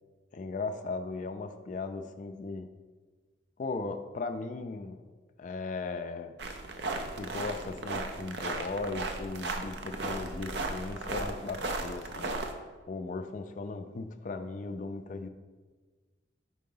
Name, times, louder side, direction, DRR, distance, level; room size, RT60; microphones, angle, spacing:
voice 1, 0.3-2.7 3.6-5.0 5.4-6.3 7.2-12.4 12.9-15.3, left 3 dB, 40° left, 7 dB, 0.3 m, -37 dB
sound 1, 6.4-12.5, right 2 dB, 60° right, 0.5 m, -36 dB
4.6 x 3.8 x 5.4 m, 1.4 s
head